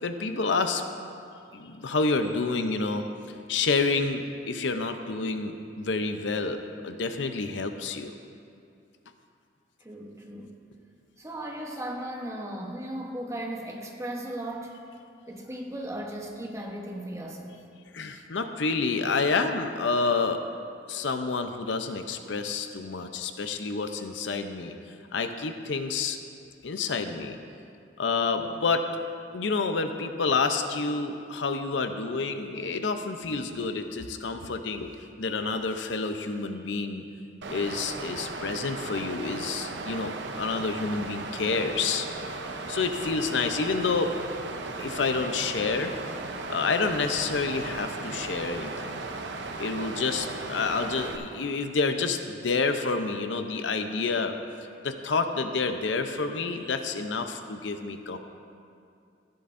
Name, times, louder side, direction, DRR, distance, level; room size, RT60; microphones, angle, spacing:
voice 1, 0.0-0.8 1.5-3.0 3.5-8.1 17.9-20.4 20.9-24.7 25.1-26.2 26.6-27.4 28.0-28.9 29.3-34.9 35.2-37.0 37.5-42.1 42.7-44.2 44.7-45.9 46.5-49.0 49.6-54.4 54.8-58.2, left 4 dB, 80° left, 7 dB, 0.6 m, -28 dB
voice 2, 9.8-10.6 11.2-14.8 15.3-17.6, right 1 dB, 15° right, 0 dB, 1.0 m, -36 dB
Water, 37.4-51.2, right 3 dB, 70° right, 0.7 m, -36 dB
15.0 x 10.5 x 2.6 m, 2.4 s
head